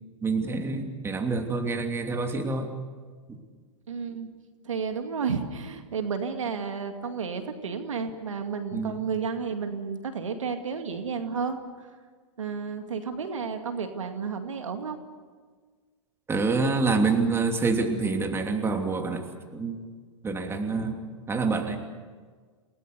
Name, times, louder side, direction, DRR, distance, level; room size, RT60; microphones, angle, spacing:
voice 1, 0.2-2.7 3.3-3.4 8.7-9.1 16.3-19.3 19.5-19.8 20.2-21.0 21.3-21.8, right 4 dB, 15° right, 4 dB, 3.0 m, -27 dB
voice 2, 3.9-4.3 4.6-11.6 12.4-15.0, right 5 dB, 85° right, 6 dB, 2.3 m, -32 dB
28.5 x 18.5 x 6.8 m, 1.5 s
hypercardioid pair, 110°, 16 cm